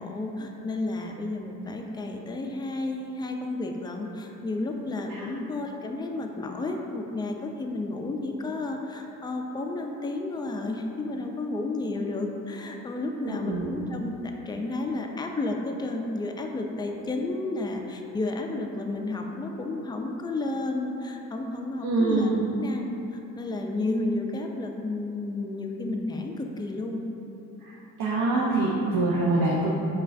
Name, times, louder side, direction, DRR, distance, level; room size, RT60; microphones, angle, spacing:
voice 1, 0.0-14.1 14.5-22.3 22.6-27.0, left 2 dB, 15° left, 2 dB, 0.3 m, -32 dB
voice 2, 13.3-13.8 21.8-22.5 27.6-27.7 28.0-29.7, right 2 dB, 70° right, -4 dB, 0.6 m, -25 dB
5.4 x 2.4 x 2.5 m, 3.0 s
supercardioid pair, 60°, 36 cm